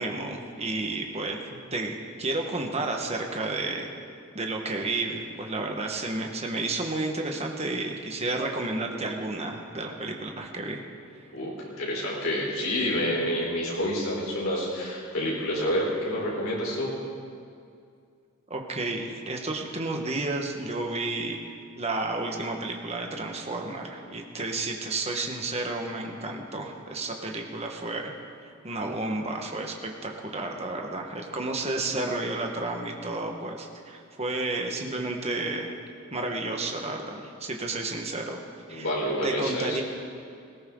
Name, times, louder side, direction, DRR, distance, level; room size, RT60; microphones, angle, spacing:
voice 1, 0.0-3.9 4.3-10.8 18.5-21.4 21.7-28.1 28.4-35.8 36.1-38.4 38.7-38.9 39.2-39.8, right 2 dB, 30° right, 2 dB, 1.5 m, -31 dB
voice 2, 11.3-16.9 38.7-39.8, equal, 70° left, -5 dB, 4.3 m, -28 dB
19.5 x 17.0 x 3.9 m, 2.3 s
head